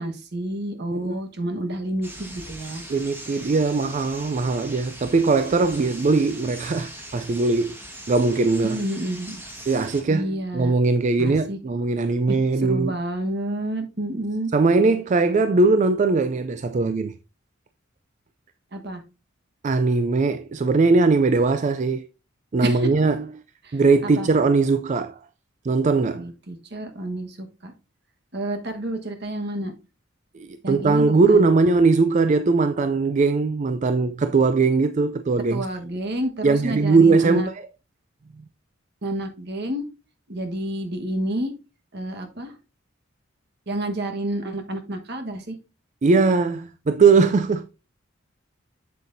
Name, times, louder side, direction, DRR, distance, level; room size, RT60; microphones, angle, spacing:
voice 1, 0.0-2.8 8.6-9.4 10.1-10.7 11.2-11.6 12.3-12.4 12.6-14.5 18.7-19.0 22.6-22.9 23.6-23.8 24.2-24.3 26.1-27.7 28.3-29.7 30.6-31.5 35.5-37.5 39.0-39.8 40.3-41.5 41.9-42.5 43.7-45.6, right 1 dB, 55° right, 1.4 m, -29 dB
sound 1, 2.0-10.0, right 1 dB, 10° right, 1.5 m, -41 dB
voice 2, 2.9-7.8 8.1-8.8 9.7-13.0 14.5-17.1 19.6-22.1 22.5-23.2 23.7-25.2 25.6-26.2 30.3-35.7 36.4-37.6 46.0-47.7, right 3 dB, 35° right, 0.4 m, -20 dB
7.8 x 7.5 x 2.6 m
head